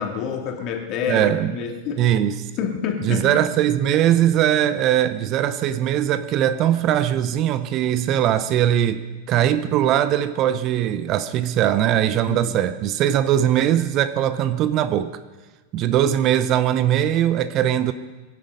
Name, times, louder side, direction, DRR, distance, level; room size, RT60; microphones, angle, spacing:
voice 1, 0.0-2.0 2.6-3.3 12.3-12.6, left 7 dB, 35° left, 2 dB, 2.7 m, -28 dB
voice 2, 1.1-1.5 2.0-2.5 3.0-15.1 15.7-17.9, right 11 dB, 35° right, 13 dB, 0.8 m, -20 dB
23.0 x 10.5 x 5.4 m, 1.3 s
figure-of-eight pair, 90°, 0 cm